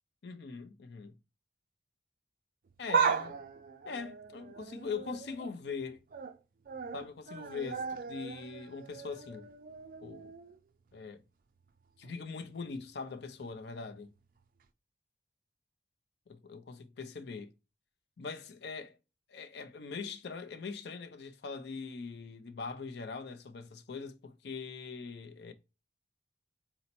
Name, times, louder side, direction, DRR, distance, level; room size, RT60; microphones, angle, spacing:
voice 1, 0.2-1.1 2.8-3.4 3.9-6.0 6.9-9.5 10.0-10.3 10.9-11.2 12.0-14.1 16.3-17.5 18.2-18.9 19.3-25.5, left 5 dB, 65° left, 0.4 m, -42 dB
sound 1, 2.7-5.5 5.9-6.4 6.7-10.6 10.9-11.0 12.0-12.1, right 6 dB, 45° right, 0.3 m, -36 dB
4.1 x 2.0 x 4.2 m
head